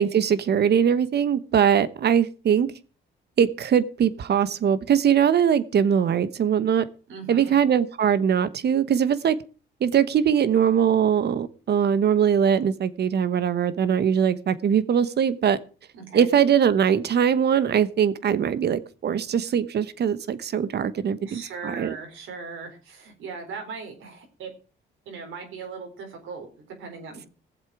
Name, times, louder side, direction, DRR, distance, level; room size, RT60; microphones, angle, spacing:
voice 1, 0.0-2.7 3.4-6.8 7.3-9.4 9.8-15.6 16.1-22.0, right 8 dB, 55° right, 16 dB, 1.1 m, -21 dB
voice 2, 7.1-7.5 15.9-16.3 21.3-24.5 25.1-27.3, right 4 dB, 80° right, 3 dB, 3.9 m, -38 dB
16.5 x 7.4 x 4.8 m, 0.37 s
cardioid pair, 90°, 20 cm